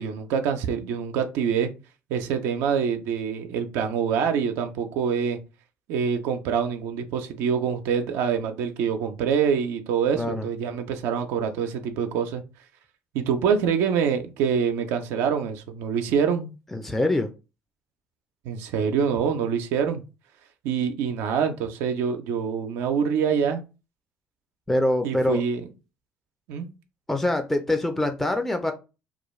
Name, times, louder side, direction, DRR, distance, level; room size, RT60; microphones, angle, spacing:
voice 1, 0.0-1.7 2.1-5.4 5.9-12.4 13.1-16.5 18.5-20.0 20.6-23.6 25.0-25.6 26.5-26.7, right 7 dB, 75° right, 5 dB, 0.4 m, -25 dB
voice 2, 10.1-10.5 16.7-17.3 24.7-25.4 27.1-28.7, left 1 dB, 5° left, 5 dB, 0.5 m, -24 dB
2.3 x 2.2 x 3.1 m, 0.30 s
hypercardioid pair, 65°, 5 cm